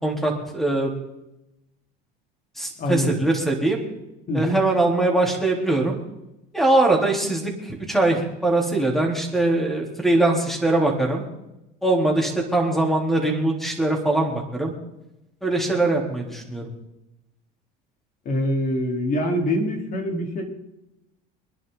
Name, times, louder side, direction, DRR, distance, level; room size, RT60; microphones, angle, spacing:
voice 1, 0.0-0.9 2.6-3.8 4.3-6.0 6.5-11.3 11.8-14.7 15.4-16.6, right 2 dB, ahead, 1 dB, 4.0 m, -22 dB
voice 2, 2.8-3.2 4.3-4.6 18.2-20.4, equal, 45° left, 2 dB, 4.3 m, -24 dB
26.0 x 11.0 x 4.2 m, 0.92 s
supercardioid pair, 110°, 20 cm